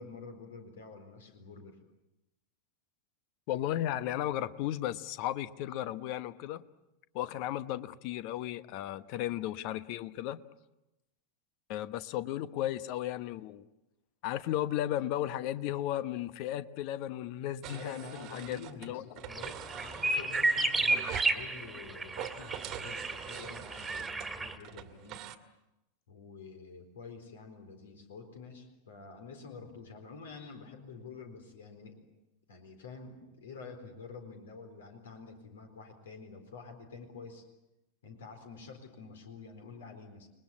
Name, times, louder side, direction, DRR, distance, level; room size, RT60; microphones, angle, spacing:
voice 1, 0.0-1.8 17.7-25.3 26.1-32.0 32.5-37.5 38.0-40.3, left 4 dB, 65° left, 5 dB, 4.1 m, -48 dB
voice 2, 3.5-6.6 7.1-10.4 11.7-13.7 14.2-19.0, left 13 dB, 45° left, 14 dB, 1.1 m, -35 dB
sound 1, 17.6-18.9 19.2-21.4 22.1-25.4, right 11 dB, 35° right, 1.7 m, -44 dB
sound 2, 19.3-24.5, right 2 dB, 10° right, 2.3 m, -31 dB
30.0 x 21.5 x 8.5 m, 0.95 s
figure-of-eight pair, 90°, 0 cm